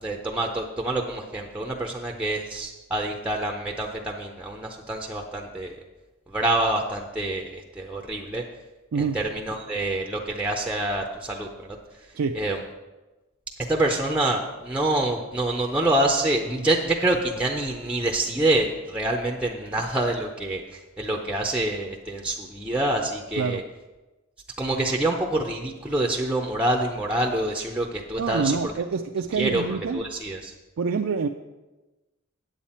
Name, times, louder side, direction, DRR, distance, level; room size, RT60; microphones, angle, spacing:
voice 1, 0.0-5.8 6.3-8.4 9.0-11.8 12.4-12.6 13.7-23.6 24.6-28.7 29.4-30.5, right 1 dB, 5° right, 2 dB, 0.6 m, -26 dB
voice 2, 28.2-30.1 30.8-31.3, right 5 dB, 75° right, 4 dB, 0.4 m, -26 dB
8.8 x 8.1 x 4.3 m, 1.1 s
head